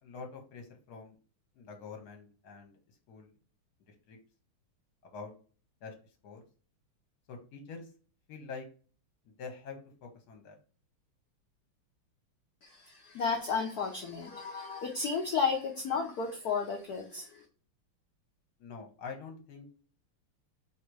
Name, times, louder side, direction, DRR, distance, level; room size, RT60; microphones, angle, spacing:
voice 1, 0.0-1.2 1.6-2.8 3.1-3.3 4.1-4.2 5.1-5.3 5.8-5.9 6.2-6.4 7.3-7.8 8.3-8.7 9.4-10.6 18.6-19.7, left 5 dB, 55° left, 3 dB, 1.3 m, -45 dB
voice 2, 12.6-17.4, left 5 dB, 75° left, 2 dB, 0.9 m, -33 dB
3.1 x 2.9 x 4.5 m, 0.39 s
omnidirectional pair, 2.4 m